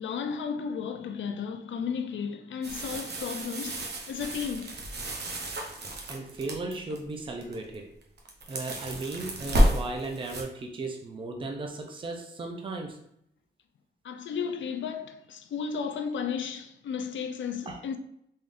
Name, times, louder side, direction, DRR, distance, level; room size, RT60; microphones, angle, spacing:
voice 1, 0.0-4.8 14.0-18.0, left 6 dB, 90° left, 0.4 m, -34 dB
sound 1, 2.6-7.0 7.4-7.8 8.0-10.4, equal, 60° right, 0.7 m, -30 dB
voice 2, 6.1-7.9 8.5-13.0 17.7-17.8, right 3 dB, 25° right, 0.4 m, -36 dB
3.6 x 3.5 x 2.5 m
wide cardioid pair, 170°, 19 cm